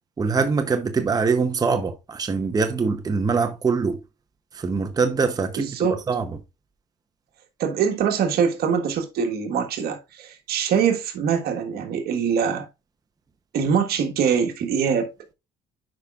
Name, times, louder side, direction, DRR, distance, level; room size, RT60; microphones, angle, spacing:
voice 1, 0.2-4.0 4.5-5.8 6.1-6.4, right 4 dB, 20° right, 0.7 m, -23 dB
voice 2, 5.6-6.0 7.6-12.7 13.5-15.1, right 7 dB, 70° right, 1.4 m, -23 dB
10.5 x 5.0 x 2.4 m
cardioid pair, 110°, 17 cm